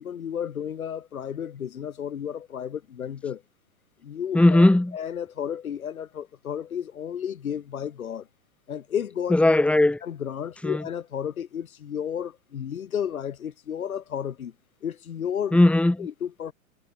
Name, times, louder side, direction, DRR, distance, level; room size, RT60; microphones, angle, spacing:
voice 1, 0.0-3.4 4.0-4.6 4.9-8.3 8.7-9.4 10.0-14.5 14.8-15.6 16.0-16.5, left 8 dB, 85° left, 1.7 m, -32 dB
voice 2, 4.3-5.0 9.3-10.0 10.6-10.8 15.5-16.1, left 1 dB, 5° left, 1.5 m, -18 dB
hypercardioid pair, 110°, 41 cm